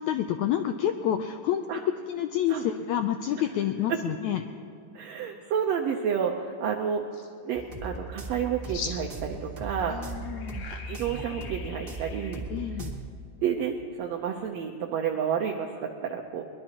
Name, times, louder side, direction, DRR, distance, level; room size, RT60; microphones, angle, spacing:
voice 1, 0.0-1.6 2.1-4.4 9.9-10.6 12.5-12.9, left 10 dB, 85° left, 6 dB, 1.7 m, -28 dB
voice 2, 4.9-7.0 7.4-10.0 10.5-12.4 13.4-16.4, right 8 dB, 75° right, 1 dB, 1.6 m, -30 dB
sound 1, 7.1-7.3 8.7-9.3 9.7-12.4, left 5 dB, 60° left, 1.8 m, -41 dB
sound 2, 7.5-13.0, right 2 dB, 40° right, 1.2 m, -38 dB
23.0 x 21.5 x 3.0 m, 2.6 s
omnidirectional pair, 4.0 m